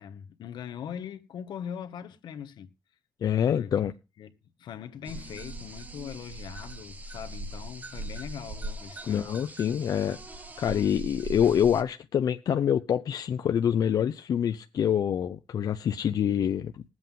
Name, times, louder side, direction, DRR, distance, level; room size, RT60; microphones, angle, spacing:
voice 1, 0.0-2.7 3.5-3.7 4.2-4.3 4.6-9.3, left 8 dB, 85° left, 1.2 m, -41 dB
voice 2, 3.2-3.9 9.0-10.2 10.6-16.8, left 9 dB, 60° left, 0.5 m, -26 dB
sound 1, 5.0-11.8, right 1 dB, 20° right, 1.0 m, -40 dB
20.5 x 7.9 x 3.7 m
wide cardioid pair, 160°, 7 cm